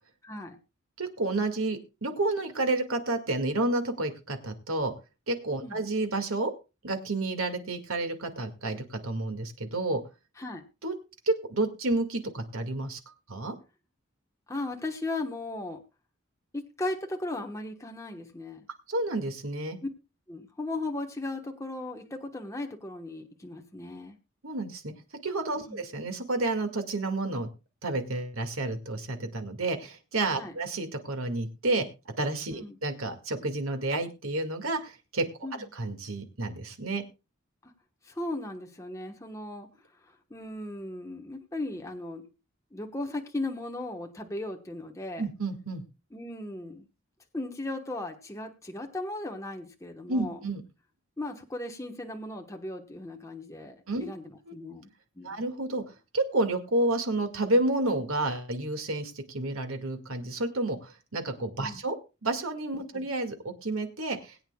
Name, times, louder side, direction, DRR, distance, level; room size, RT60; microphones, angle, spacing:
voice 1, 0.2-0.6 5.6-5.8 10.4-10.6 14.5-15.8 16.5-18.6 19.8-19.9 20.3-24.2 25.6-25.8 30.3-30.5 32.5-32.8 35.4-35.7 37.6-37.7 38.0-39.7 40.3-42.3 42.7-45.2 46.1-46.9 47.3-50.4 51.2-54.9 55.2-55.4 61.6-61.8 62.9-63.0, left 2 dB, 15° left, 2 dB, 1.2 m, -37 dB
voice 2, 1.0-4.9 5.3-6.5 6.8-10.0 10.8-10.9 11.3-13.0 13.3-13.6 18.9-19.8 24.4-24.9 25.2-27.5 27.8-31.9 32.2-35.2 35.7-37.0 45.2-45.8 50.1-50.6 53.9-54.1 54.5-54.6 55.2-55.8 56.1-62.0 62.2-63.4 63.6-64.4, right 2 dB, 80° right, 6 dB, 2.1 m, -30 dB
21.0 x 9.0 x 2.3 m, 0.28 s
head